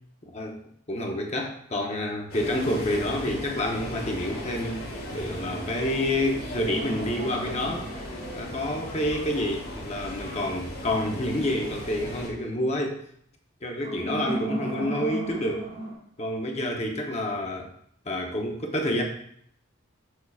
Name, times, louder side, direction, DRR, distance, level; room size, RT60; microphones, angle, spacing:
voice 1, 0.3-0.6 0.9-4.8 5.1-7.9 8.3-13.0 13.6-15.6 16.2-17.7 18.1-19.0, left 1 dB, 35° left, 1 dB, 0.8 m, -28 dB
sound 1, 2.3-12.3, left 1 dB, 50° left, 1.7 m, -37 dB
sound 2, 6.7-9.1 13.8-15.9, right 2 dB, 45° right, 1.8 m, -35 dB
6.7 x 6.3 x 2.4 m, 0.67 s
head